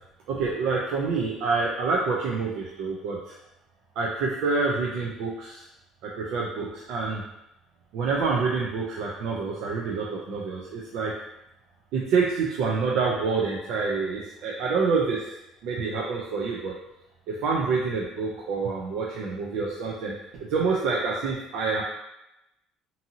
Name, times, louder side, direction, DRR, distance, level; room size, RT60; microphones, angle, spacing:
voice 1, 0.3-3.3 4.0-5.6 6.0-7.2 7.9-11.1 11.9-15.3 15.6-16.7 17.3-20.1 20.4-21.8, right 4 dB, 65° right, -3 dB, 0.4 m, -27 dB
2.6 x 2.6 x 2.7 m, 0.89 s
cardioid pair, 160°, 0 cm